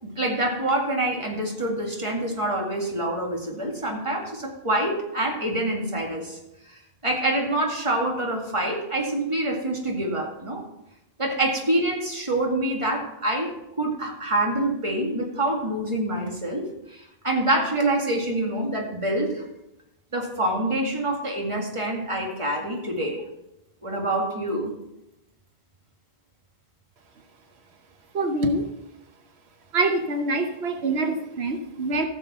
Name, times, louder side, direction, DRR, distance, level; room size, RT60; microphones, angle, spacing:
voice 1, 0.0-6.4 7.0-10.6 11.2-13.5 13.8-19.4 20.1-23.2 23.8-24.8, right 1 dB, 30° right, 0 dB, 2.1 m, -26 dB
voice 2, 28.1-28.7 29.7-32.1, right 2 dB, 90° right, 5 dB, 1.2 m, -25 dB
15.5 x 7.2 x 4.2 m, 0.90 s
omnidirectional pair, 1.0 m